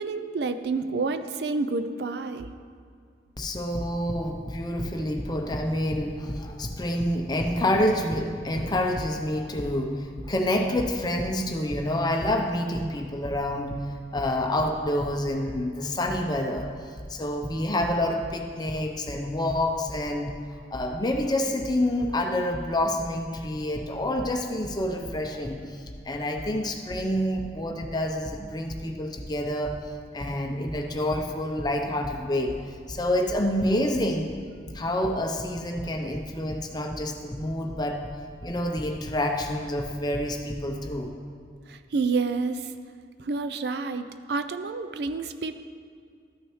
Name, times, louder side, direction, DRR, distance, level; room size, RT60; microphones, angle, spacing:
voice 1, 0.0-2.5 41.7-42.7 43.2-45.6, right 4 dB, 60° right, 10 dB, 0.4 m, -29 dB
voice 2, 3.4-13.7 14.1-16.7 17.1-20.3 20.7-29.7 30.1-32.5 32.9-34.3 34.7-38.0 38.4-41.1, left 1 dB, 25° left, 3 dB, 0.6 m, -27 dB
13.0 x 6.1 x 3.1 m, 2.2 s
head